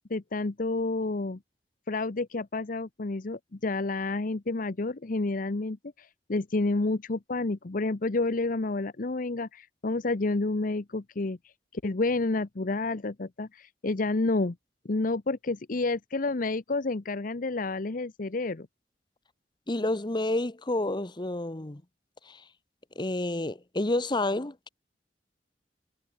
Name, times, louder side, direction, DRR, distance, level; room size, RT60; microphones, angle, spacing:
voice 1, 0.1-1.4 1.9-5.8 6.3-11.4 11.8-14.6 14.8-18.7, left 3 dB, 50° left, 0.8 m, -29 dB
voice 2, 19.7-21.8 22.3-22.4 23.0-24.7, left 2 dB, 25° left, 1.1 m, -29 dB
head